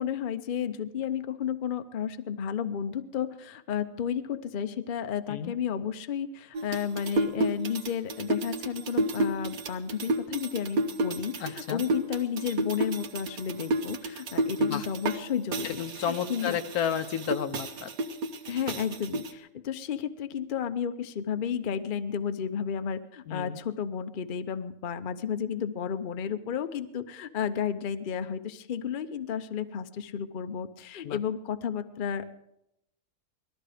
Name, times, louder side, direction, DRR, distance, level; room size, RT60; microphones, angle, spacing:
voice 1, 0.0-16.6 18.5-32.3, left 8 dB, 45° left, 10 dB, 0.7 m, -32 dB
sound 1, 6.5-15.2 15.5-19.3, right 2 dB, 80° right, 1.5 m, -31 dB
voice 2, 11.4-11.8 14.6-14.9 15.6-17.9 23.3-23.6 31.0-31.2, left 8 dB, 85° left, 9 dB, 1.3 m, -32 dB
19.0 x 13.5 x 5.0 m, 0.81 s
omnidirectional pair, 1.5 m